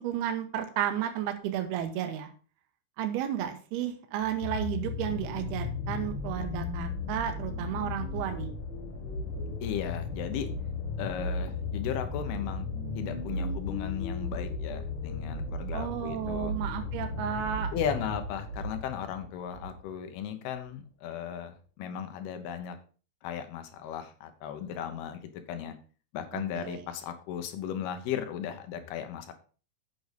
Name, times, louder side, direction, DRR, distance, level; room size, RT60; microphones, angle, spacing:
voice 1, 0.0-2.3 3.0-8.5 15.7-17.8 26.3-26.9, right 10 dB, 75° right, 6 dB, 2.9 m, -33 dB
sound 1, 4.2-19.8 20.6-20.7, left 3 dB, 60° left, 1.3 m, -35 dB
voice 2, 9.6-10.5 11.0-12.7 12.9-16.5 17.7-22.8 23.2-25.8 26.1-29.3, left 9 dB, 75° left, 8 dB, 2.9 m, -36 dB
8.7 x 6.4 x 5.2 m, 0.38 s
omnidirectional pair, 4.8 m